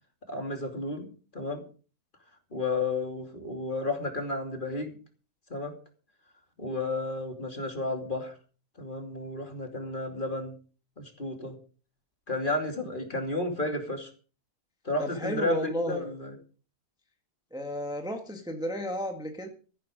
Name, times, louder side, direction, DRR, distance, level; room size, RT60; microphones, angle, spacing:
voice 1, 0.3-1.6 2.5-5.0 5.5-5.7 6.6-8.3 8.8-10.6 11.0-11.6 12.3-14.1 14.8-16.4, left 2 dB, 30° left, 4 dB, 2.9 m, -32 dB
voice 2, 15.0-16.1 17.5-19.5, equal, 5° right, 3 dB, 1.6 m, -32 dB
14.0 x 11.5 x 5.2 m, 0.38 s
omnidirectional pair, 1.7 m